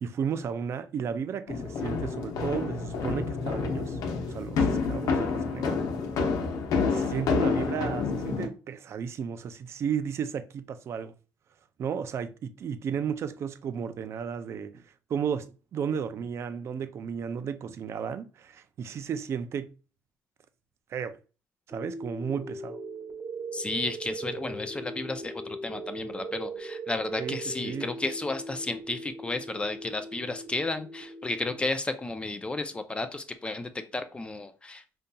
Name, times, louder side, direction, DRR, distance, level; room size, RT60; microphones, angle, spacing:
voice 1, 0.0-4.0 4.3-5.8 6.9-11.1 11.8-14.8 15.1-19.7 20.9-21.2 21.7-22.8 27.2-27.9, right 7 dB, 45° right, 0.4 m, -34 dB
sound 1, 1.5-8.5, left 4 dB, 65° left, 0.9 m, -28 dB
sound 2, 21.7-31.7, right 2 dB, 20° right, 1.0 m, -40 dB
voice 2, 23.5-34.8, left 2 dB, 15° left, 0.4 m, -33 dB
5.2 x 2.7 x 2.2 m
cardioid pair, 115°, 7 cm